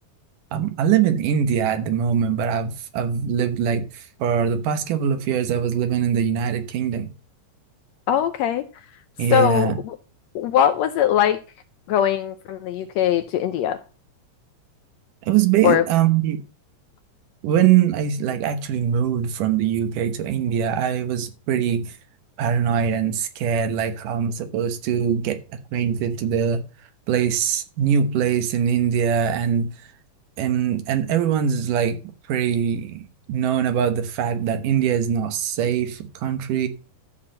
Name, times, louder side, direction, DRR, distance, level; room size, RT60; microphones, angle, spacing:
voice 1, 0.5-7.1 9.2-9.8 15.3-16.4 17.4-21.9 22.4-25.4 25.7-26.6 27.1-29.7 30.4-32.0 32.3-36.7, right 8 dB, 90° right, 2.8 m, -22 dB
voice 2, 8.1-8.6 9.3-10.0 10.3-11.4 11.9-13.8 15.6-15.8, left 10 dB, 75° left, 1.6 m, -21 dB
13.0 x 4.4 x 7.6 m
omnidirectional pair, 3.6 m